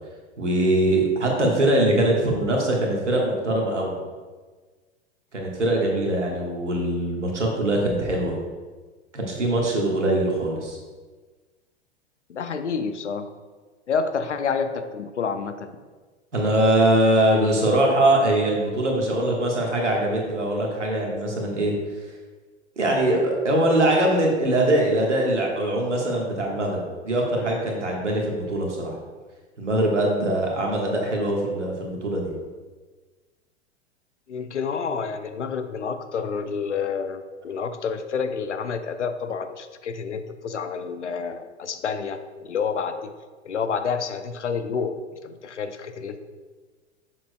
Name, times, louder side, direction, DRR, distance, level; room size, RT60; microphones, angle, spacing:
voice 1, 0.4-4.0 5.3-8.3 9.1-10.8 16.3-21.7 22.8-29.0 29.6-32.3, right 1 dB, 85° right, -1 dB, 1.5 m, -22 dB
voice 2, 12.3-13.3 13.9-15.7 34.3-43.1 43.4-46.2, left 5 dB, 85° left, 9 dB, 0.6 m, -29 dB
7.3 x 6.5 x 2.2 m, 1.4 s
figure-of-eight pair, 95°, 35 cm